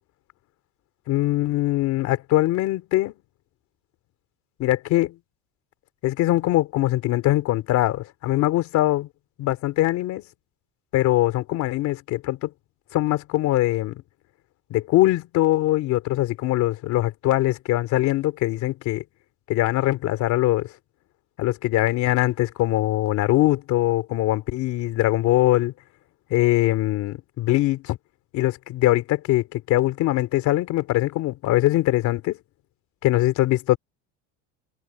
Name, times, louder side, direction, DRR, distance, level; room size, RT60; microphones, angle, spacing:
voice 1, 1.1-3.1 4.6-5.2 6.0-9.1 9.4-10.2 10.9-12.5 12.9-14.0 14.7-19.0 19.5-20.7 21.4-25.7 26.3-28.0 28.3-32.4 33.0-33.8, left 16 dB, 50° left, 3.0 m, -22 dB
cardioid pair, 170°, 38 cm